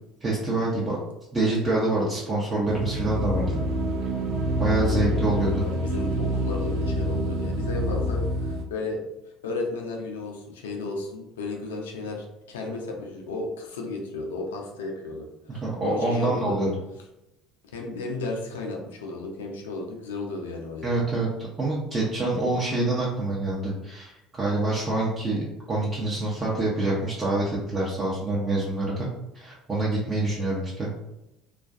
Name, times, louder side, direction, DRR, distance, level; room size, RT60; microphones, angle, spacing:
voice 1, 0.2-1.0 1.3-3.6 4.6-5.6 15.5-16.7 20.8-21.3 21.6-29.1 29.3-30.9, right 2 dB, 30° right, -6 dB, 0.6 m, -26 dB
sound 1, 2.7-8.6, equal, 65° right, 0.4 m, -27 dB
voice 2, 4.8-9.0 9.4-16.6 17.6-20.9, left 3 dB, 80° left, 1 dB, 0.4 m, -34 dB
2.4 x 2.2 x 2.4 m, 0.90 s
hypercardioid pair, 65°, 0 cm